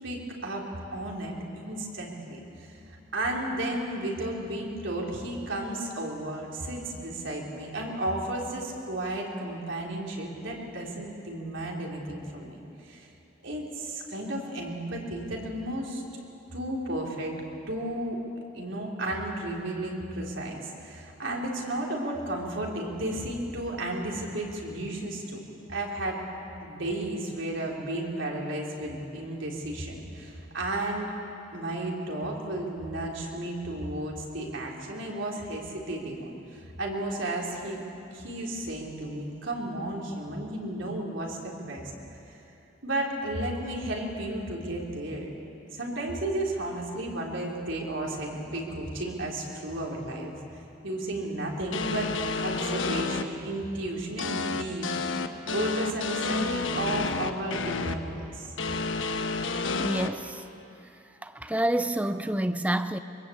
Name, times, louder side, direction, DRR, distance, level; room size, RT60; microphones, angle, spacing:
voice 1, 0.0-0.6 0.9-2.8 3.1-13.1 13.4-16.0 16.5-17.3 17.7-18.2 18.5-25.4 25.7-26.2 26.6-31.1 31.5-37.8 38.1-41.9 42.8-45.3 45.7-50.3 50.8-54.9 55.2-58.5, right 1 dB, 65° right, -1 dB, 3.8 m, -33 dB
sound 1, 51.7-53.2 54.2-57.9 58.6-60.1, left 3 dB, 70° left, 1.2 m, -30 dB
voice 2, 59.8-60.4 61.2-63.0, right 1 dB, 5° right, 11 dB, 0.5 m, -28 dB
24.0 x 22.0 x 8.6 m, 2.8 s
head